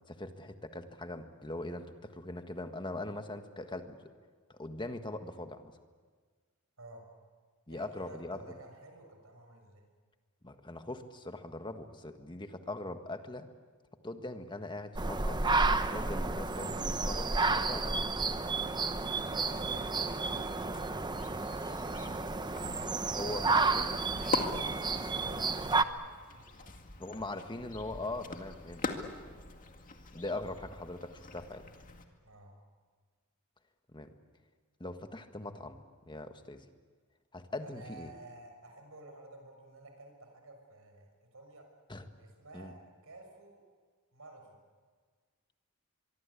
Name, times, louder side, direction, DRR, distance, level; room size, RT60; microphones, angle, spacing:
voice 1, 0.1-4.1 4.6-5.7 7.7-8.4 10.4-13.5 14.0-15.4 15.9-18.0 23.1-24.0 27.0-29.4 30.1-31.6 33.9-34.1 34.8-36.6 37.3-38.1 41.9-42.0 42.5-42.7, left 2 dB, 20° left, 7 dB, 1.6 m, -41 dB
voice 2, 7.7-9.8 19.3-20.9 25.1-26.7 32.2-32.5 37.6-41.7 42.2-43.6 44.1-44.6, right 2 dB, 75° right, 4 dB, 6.4 m, -53 dB
sound 1, 15.0-25.8, right 3 dB, 20° right, 0.9 m, -31 dB
sound 2, 19.1-32.0, left 3 dB, 40° left, 2.1 m, -43 dB
24.0 x 24.0 x 8.5 m, 1.5 s
head